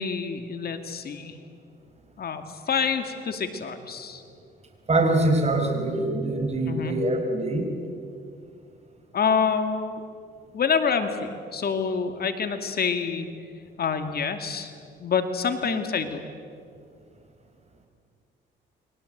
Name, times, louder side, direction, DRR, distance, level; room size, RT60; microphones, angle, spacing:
voice 1, 0.0-1.4 2.2-4.2 6.7-6.9 9.1-10.0 10.5-13.5 13.8-14.7 15.0-16.2, left 6 dB, 50° left, 7 dB, 2.3 m, -27 dB
voice 2, 4.9-7.7 15.6-15.8, right 2 dB, 35° right, 4 dB, 5.4 m, -24 dB
29.5 x 23.0 x 8.0 m, 2.3 s
cardioid pair, 90°, 20 cm